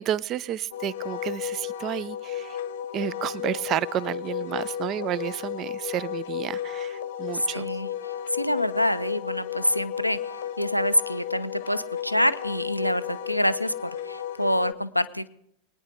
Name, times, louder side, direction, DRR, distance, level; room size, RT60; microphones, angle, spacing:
voice 1, 0.0-2.6 2.9-7.7, right 11 dB, 35° right, 20 dB, 0.5 m, -31 dB
Wind instrument woodwind instrument, 0.7-14.7, left 9 dB, 60° left, 1.0 m, -33 dB
voice 2, 7.5-7.9 8.3-10.2 10.6-15.3, left 1 dB, 90° left, 13 dB, 0.6 m, -26 dB
21.5 x 9.8 x 5.0 m, 0.75 s
figure-of-eight pair, 90°, 0 cm